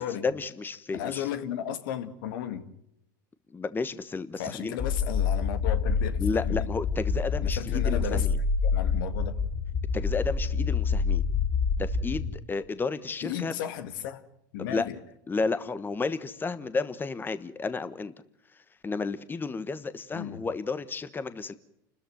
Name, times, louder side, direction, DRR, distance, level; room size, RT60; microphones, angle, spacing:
voice 1, 0.0-1.3 3.5-4.8 6.2-8.4 9.9-11.3 11.8-13.5 14.6-14.9 15.3-18.1 18.5-21.5, left 4 dB, 20° left, 1.3 m, -32 dB
voice 2, 0.9-2.7 4.4-6.7 7.4-8.3 8.7-9.4 13.2-14.3 14.5-15.0 20.1-20.4, left 9 dB, 70° left, 2.1 m, -34 dB
sound 1, 4.8-12.3, left 5 dB, 40° left, 4.9 m, -27 dB
29.0 x 14.0 x 9.3 m
hypercardioid pair, 100°, 11 cm